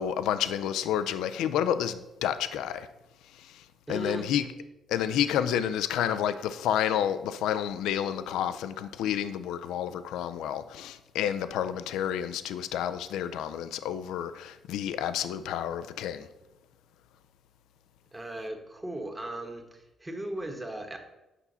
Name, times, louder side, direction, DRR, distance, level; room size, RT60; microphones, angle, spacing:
voice 1, 0.0-2.9 3.4-3.6 3.9-4.4 4.9-16.3, left 10 dB, 90° left, 0.4 m, -30 dB
voice 2, 3.9-4.3 18.1-21.0, right 1 dB, 15° right, 1.2 m, -37 dB
8.3 x 5.5 x 4.0 m
cardioid pair, 90°, 0 cm